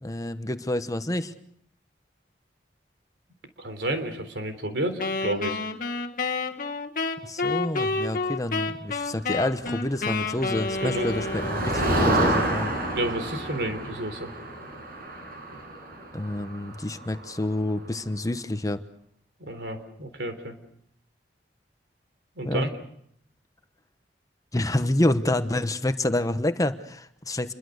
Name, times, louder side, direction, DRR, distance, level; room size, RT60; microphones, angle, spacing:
voice 1, 0.0-1.3 7.2-12.7 16.1-18.8 22.4-22.7 24.5-27.5, left 1 dB, 20° left, 10 dB, 1.1 m, -28 dB
voice 2, 3.6-5.6 10.8-11.2 12.9-14.3 19.5-20.5 22.4-22.7, right 1 dB, 75° right, 7 dB, 3.7 m, -30 dB
Wind instrument woodwind instrument, 5.0-11.8, left 3 dB, 50° left, 1.7 m, -29 dB
Motor vehicle (road), 9.9-17.7, right 1 dB, 60° right, 6.0 m, -29 dB
28.0 x 22.5 x 6.6 m, 0.70 s
head